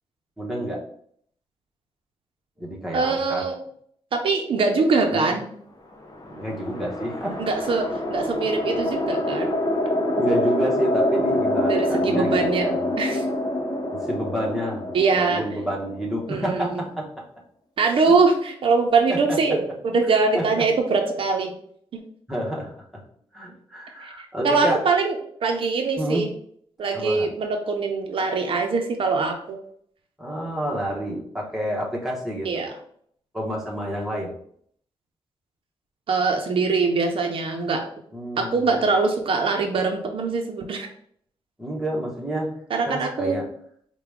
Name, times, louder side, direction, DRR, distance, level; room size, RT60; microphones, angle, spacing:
voice 1, 0.4-0.8 2.6-3.5 5.1-5.3 6.3-7.4 10.2-12.9 13.9-14.9 15.3-17.2 18.1-18.2 19.1-19.4 20.1-20.5 22.3-23.0 23.3-24.8 26.0-26.3 26.9-27.3 30.2-32.5 33.3-34.3 38.1-38.8 41.6-42.5 42.9-43.5, equal, 5° right, -3 dB, 0.9 m, -29 dB
voice 2, 2.9-3.6 4.1-5.4 7.4-9.5 11.7-12.7 13.0-13.2 14.9-15.4 16.3-16.8 17.8-21.5 21.9-22.0 24.0-24.1 24.4-25.2 25.4-26.3 26.8-29.6 32.4-32.7 36.1-37.8 38.4-40.9 42.7-43.4, right 4 dB, 65° right, 3 dB, 0.6 m, -23 dB
sound 1, 6.0-16.4, left 1 dB, 40° left, 0.6 m, -26 dB
4.7 x 2.2 x 3.5 m, 0.64 s
wide cardioid pair, 135°, 10 cm